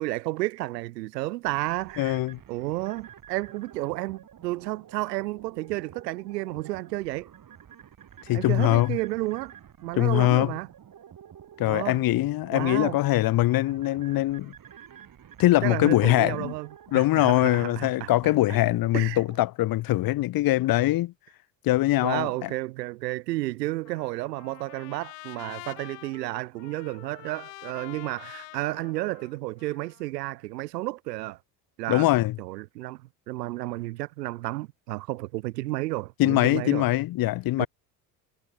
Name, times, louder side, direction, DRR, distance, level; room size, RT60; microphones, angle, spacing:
voice 1, 0.0-2.2 2.5-7.3 8.3-9.5 9.8-10.7 11.7-12.0 12.5-13.0 15.6-16.7 16.9-18.1 18.9-19.2 22.0-31.4 31.8-32.1 32.4-33.0 33.3-36.8 37.6-37.7, right 19 dB, 80° right, 1.2 m, -32 dB
sound 1, 1.4-19.4, right 9 dB, 40° right, 6.5 m, -50 dB
voice 2, 2.0-2.4 8.3-9.0 10.0-10.5 11.6-14.5 15.4-16.5 16.9-21.1 21.6-22.5 31.9-32.4 36.2-37.7, left 16 dB, 45° left, 0.9 m, -22 dB
Trumpet, 23.9-30.1, left 24 dB, 75° left, 1.8 m, -46 dB
hypercardioid pair, 65°, 48 cm